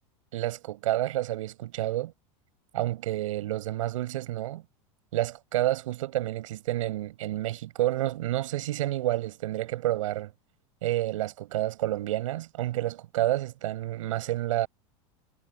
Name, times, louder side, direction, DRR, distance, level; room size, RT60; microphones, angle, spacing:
voice 1, 0.3-2.1 2.7-4.6 5.1-10.3 10.8-14.7, right 15 dB, 85° right, 8.0 m, -29 dB
supercardioid pair, 135°, 16 cm